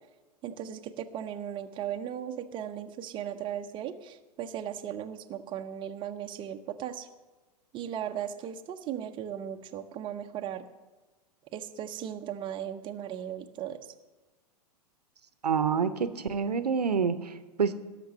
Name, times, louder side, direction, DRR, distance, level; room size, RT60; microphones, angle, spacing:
voice 1, 0.4-7.1 7.7-10.7 11.5-13.9, right 10 dB, 25° right, 5 dB, 0.8 m, -37 dB
voice 2, 15.4-17.7, right 6 dB, 70° right, 12 dB, 0.9 m, -27 dB
17.0 x 6.8 x 6.6 m, 1.2 s
figure-of-eight pair, 100°, 21 cm